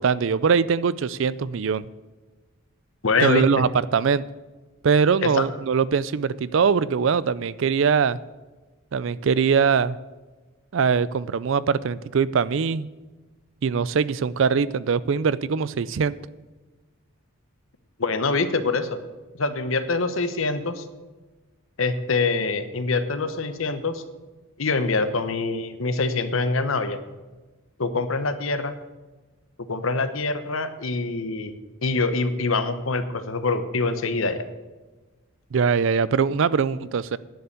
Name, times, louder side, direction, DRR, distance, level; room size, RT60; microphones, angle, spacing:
voice 1, 0.0-1.9 3.2-4.2 4.8-8.2 8.9-10.0 10.7-12.9 13.6-16.2 35.5-37.2, right 6 dB, 60° right, 18 dB, 0.4 m, -22 dB
voice 2, 3.0-3.4 5.2-5.5 18.0-19.0 19.4-20.8 21.8-24.0 24.6-27.0 27.8-28.7 29.7-31.5 31.8-34.4, left 3 dB, 70° left, 10 dB, 1.0 m, -25 dB
10.5 x 6.9 x 8.3 m, 1.2 s
head